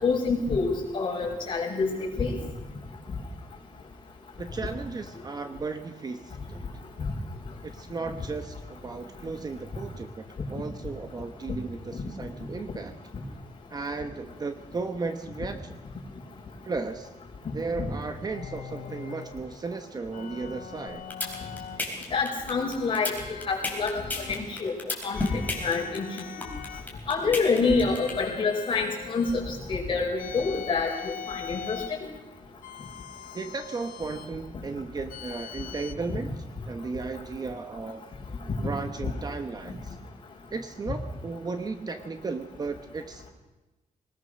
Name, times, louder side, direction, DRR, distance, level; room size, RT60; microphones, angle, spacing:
voice 1, 0.0-1.9 2.2-2.4 17.5-17.9 22.1-23.1 23.5-23.9 24.3-24.7 25.0-26.1 26.3-26.4 27.1-30.9 31.3-32.0, left 4 dB, 35° left, -2 dB, 5.5 m, -27 dB
voice 2, 4.4-6.6 7.6-12.9 13.7-15.8 16.6-17.1 17.5-21.0 33.3-36.3 36.7-38.0 38.6-40.0 40.5-43.3, right 4 dB, 30° right, 8 dB, 0.9 m, -35 dB
sound 1, 18.3-19.4 20.1-21.9 22.5-24.4 25.1-26.9 27.6-29.4 30.2-32.0 32.6-34.3 35.1-35.9, left 8 dB, 85° left, 2.0 m, -42 dB
sound 2, 20.9-28.1, left 2 dB, 10° left, 3.8 m, -31 dB
21.5 x 19.5 x 6.4 m, 1.1 s
wide cardioid pair, 175°, 14 cm